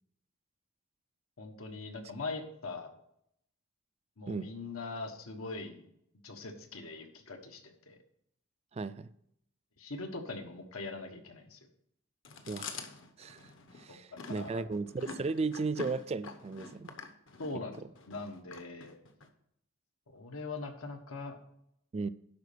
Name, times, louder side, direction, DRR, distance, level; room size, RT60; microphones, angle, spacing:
voice 1, 1.4-2.9 4.2-5.8 6.2-7.9 9.8-11.6 13.9-14.0 14.4-14.6 17.4-17.8 18.1-19.0 20.1-21.4, left 3 dB, 85° left, 4 dB, 1.4 m, -41 dB
voice 2, 8.7-9.1 12.5-12.7 13.2-16.9 21.9-22.1, right 4 dB, 30° right, 14 dB, 0.3 m, -35 dB
Chewing mastication, 12.2-19.3, left 4 dB, 65° left, 1.0 m, -46 dB
11.0 x 4.2 x 6.7 m, 0.74 s
head